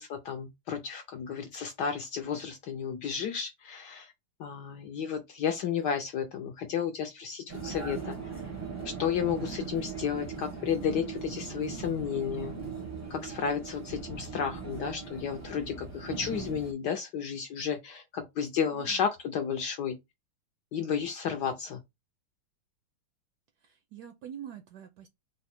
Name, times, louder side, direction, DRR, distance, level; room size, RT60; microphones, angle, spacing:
voice 1, 0.0-4.1 4.4-8.2 9.0-12.6 13.1-20.0 20.7-21.8, left 7 dB, 75° left, 1.0 m, -32 dB
Vehicle, 7.5-16.7, right 5 dB, 25° right, 0.4 m, -39 dB
voice 2, 18.7-19.0 23.6-25.1, right 9 dB, 75° right, 0.9 m, -45 dB
3.8 x 2.1 x 4.2 m
omnidirectional pair, 2.3 m